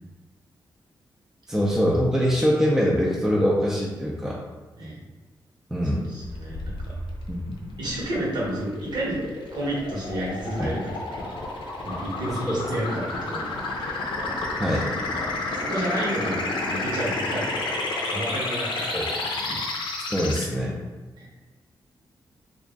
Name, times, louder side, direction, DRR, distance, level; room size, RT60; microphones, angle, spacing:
voice 1, 1.5-4.4 5.7-6.1 7.3-7.6 10.6-10.7 12.5-12.6 14.6-14.9 18.9-19.0 19.5-19.6 20.1-20.8, equal, 5° right, -5 dB, 0.5 m, -23 dB
voice 2, 5.8-6.9 7.8-9.2 9.5-11.3 11.8-14.0 15.5-19.6 21.2-21.3, right 1 dB, 60° right, -5 dB, 1.2 m, -31 dB
sound 1, 6.2-20.4, left 2 dB, 80° left, 0.5 m, -31 dB
3.0 x 2.5 x 3.6 m, 1.3 s
cardioid pair, 100°, 8 cm